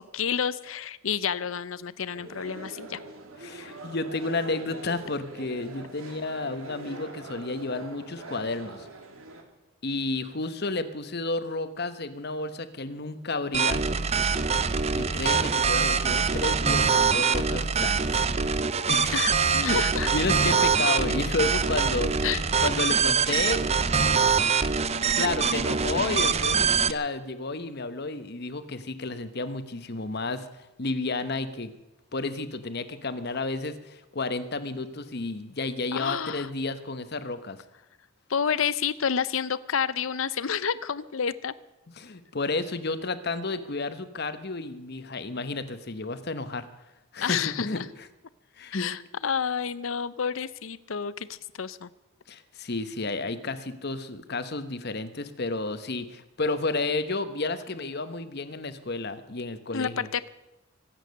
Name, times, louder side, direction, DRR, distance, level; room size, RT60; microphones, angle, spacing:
voice 1, 0.0-3.0 3.6-3.7 19.1-19.3 19.6-20.1 22.2-22.4 35.9-36.5 38.3-41.5 47.2-47.9 48.7-51.9 59.7-60.3, left 7 dB, 75° left, 17 dB, 0.6 m, -29 dB
sound 1, 2.1-9.4, right 2 dB, 80° right, 2.3 m, -43 dB
voice 2, 3.4-8.9 9.8-13.9 14.9-18.2 18.5-19.2 19.5-19.8 20.1-23.6 23.9-24.1 25.1-31.7 32.1-37.6 42.0-46.7 47.1-47.8 48.6-48.9 52.3-60.1, left 3 dB, 50° left, 11 dB, 1.1 m, -31 dB
sound 2, 13.5-26.9, right 5 dB, 30° right, 0.6 m, -24 dB
24.5 x 9.0 x 6.5 m, 0.99 s
head